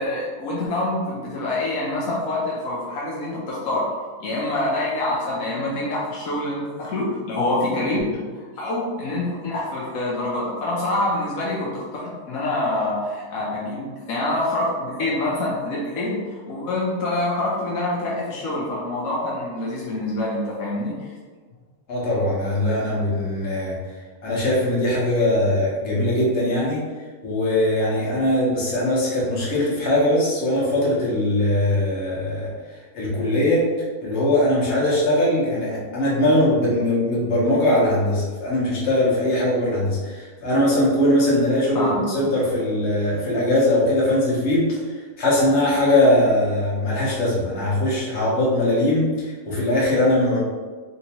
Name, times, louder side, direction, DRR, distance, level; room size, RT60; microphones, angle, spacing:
voice 1, 0.0-3.9 4.2-8.2 8.6-21.1 41.7-42.0, left 2 dB, 85° left, -5 dB, 1.1 m, -26 dB
voice 2, 21.9-23.8 24.2-26.9 27.2-32.5 32.9-33.7 34.0-50.4, left 1 dB, 60° left, -6 dB, 1.3 m, -21 dB
3.3 x 2.9 x 2.8 m, 1.4 s
omnidirectional pair, 1.4 m